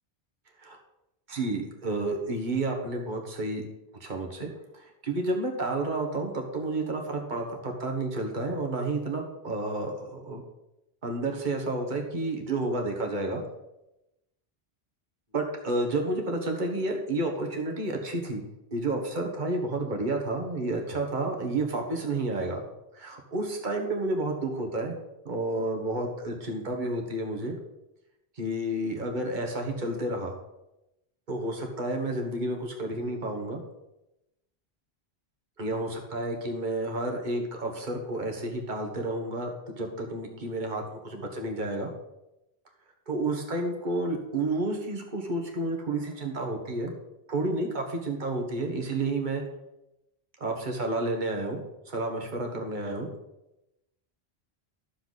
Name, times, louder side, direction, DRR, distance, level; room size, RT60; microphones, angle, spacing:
voice 1, 1.3-3.6 4.0-4.5 4.7-10.4 11.0-13.4 15.3-18.4 18.7-22.6 22.9-25.0 25.2-27.5 28.4-30.4 31.3-33.6 35.6-41.9 43.1-46.9 47.3-49.4 50.4-51.6 51.9-53.1, right 2 dB, 50° right, 2 dB, 1.6 m, -30 dB
12.0 x 7.0 x 4.1 m, 0.92 s
omnidirectional pair, 1.1 m